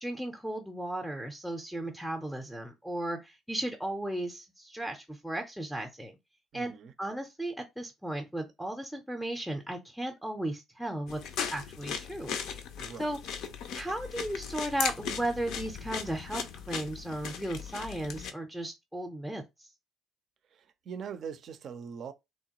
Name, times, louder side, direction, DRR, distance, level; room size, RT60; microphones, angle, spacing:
voice 1, 0.0-6.1 6.5-6.7 7.0-11.2 11.5-12.4 13.0-13.2 13.7-19.7, right 1 dB, ahead, 0.5 m, -35 dB
voice 2, 6.5-6.9 12.8-13.4 20.5-22.1, right 7 dB, 50° right, 0.4 m, -42 dB
sound 1, 11.1-18.3, left 7 dB, 60° left, 0.4 m, -38 dB
2.9 x 2.2 x 2.9 m
figure-of-eight pair, 50°, 0 cm